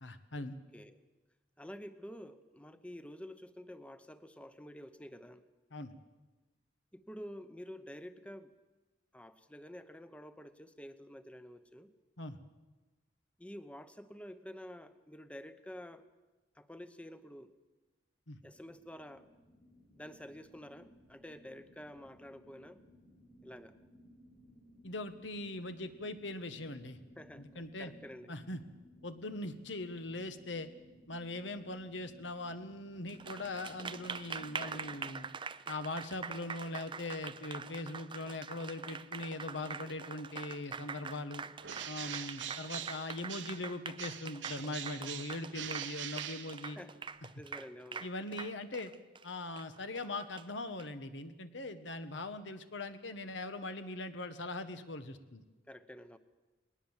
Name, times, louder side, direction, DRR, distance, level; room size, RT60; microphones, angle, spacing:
voice 1, 0.0-0.6 5.7-5.9 12.2-12.4 18.3-18.4 24.8-27.0 27.4-27.9 28.3-28.6 29.0-30.7 31.1-35.3 35.7-41.4 41.9-46.8 48.0-48.9 49.2-55.4, left 2 dB, 75° left, 9 dB, 1.4 m, -41 dB
voice 2, 0.7-1.0 1.6-5.4 6.9-8.5 9.1-11.9 13.4-16.1 16.5-17.5 18.4-19.3 20.0-22.8 23.4-23.8 27.2-28.3 46.8-46.9 47.4-48.1 55.7-56.2, equal, 5° left, 11 dB, 0.9 m, -49 dB
sound 1, 18.4-35.0, equal, 50° left, 6.6 m, -61 dB
Applause, 33.1-50.8, right 5 dB, 25° right, 0.6 m, -44 dB
Bird, 41.6-43.7 44.0-47.0, right 10 dB, 75° right, 1.0 m, -43 dB
20.5 x 19.0 x 7.4 m, 1.2 s
head